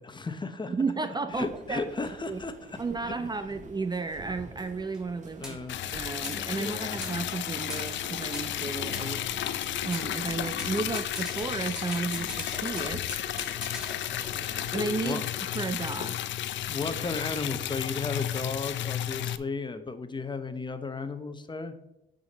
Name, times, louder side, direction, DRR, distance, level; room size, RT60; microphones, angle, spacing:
voice 1, 0.0-0.7 1.3-3.1 5.4-5.9 6.3-7.0 15.0-15.3 16.7-21.7, left 4 dB, 25° left, 9 dB, 0.8 m, -35 dB
voice 2, 0.7-2.4 2.8-5.6 5.9-9.2 9.8-13.2 14.7-15.2 15.5-16.2, right 4 dB, 20° right, 9 dB, 0.4 m, -33 dB
sound 1, 1.3-15.0, right 3 dB, 40° right, 1.1 m, -48 dB
sound 2, 4.9-5.0 5.4-5.6 6.2-6.4 7.0-7.2 7.7-7.9 8.3-9.6 9.9-10.1 10.6-14.7, equal, 5° right, 2.3 m, -42 dB
Liquid, 5.7-19.4, left 12 dB, 70° left, 0.5 m, -33 dB
8.8 x 5.1 x 4.1 m, 0.86 s
cardioid pair, 90°, 20 cm